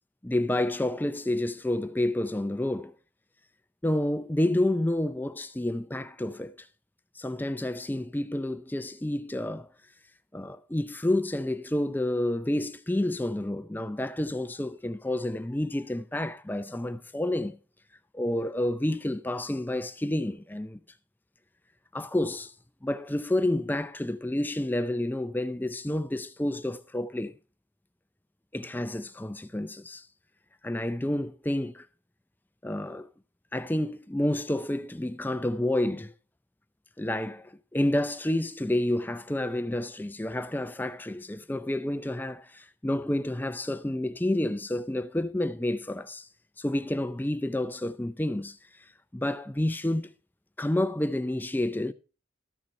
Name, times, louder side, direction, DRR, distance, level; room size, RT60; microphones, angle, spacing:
voice 1, 0.2-2.9 3.8-6.7 7.2-9.7 10.3-17.6 18.1-20.8 21.9-22.5 22.8-27.3 28.5-30.1 30.6-31.9 32.6-33.1 33.5-36.1 37.0-46.3 46.6-48.6 49.1-50.1 50.6-51.9, left 1 dB, 10° left, 0.4 m, -29 dB
13.5 x 6.7 x 4.3 m
head